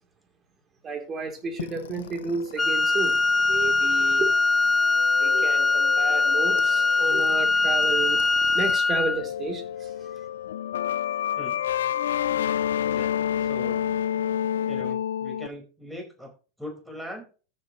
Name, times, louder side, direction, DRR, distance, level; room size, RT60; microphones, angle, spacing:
voice 1, 0.8-4.3 5.2-8.2 8.5-9.9, right 4 dB, 30° right, 3.4 m, -32 dB
sound 1, 1.6-8.8 9.0-15.5, left 10 dB, 75° left, 0.4 m, -30 dB
Wind instrument woodwind instrument, 2.6-9.2, left 3 dB, 15° left, 0.5 m, -22 dB
voice 2, 11.4-11.7 12.8-13.8 14.7-16.3 16.6-17.3, left 1 dB, 5° right, 4.9 m, -40 dB
14.5 x 6.9 x 3.1 m
hypercardioid pair, 95°, 0 cm